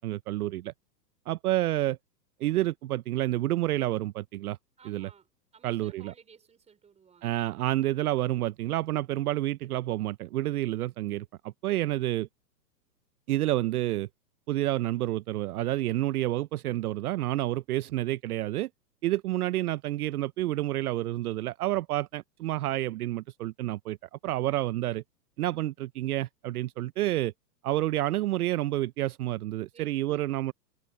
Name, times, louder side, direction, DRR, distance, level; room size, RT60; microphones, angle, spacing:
voice 1, 0.0-0.7 1.3-2.0 2.4-4.6 4.8-5.1 5.6-6.1 7.2-12.3 13.3-14.1 14.5-18.7 19.0-24.0 24.2-25.0 25.4-27.3 27.6-30.5, right 15 dB, 65° right, 0.7 m, -29 dB
voice 2, 4.8-5.3 5.5-7.4 29.7-30.2, right 6 dB, 15° right, 5.0 m, -56 dB
hypercardioid pair, 140°, 49 cm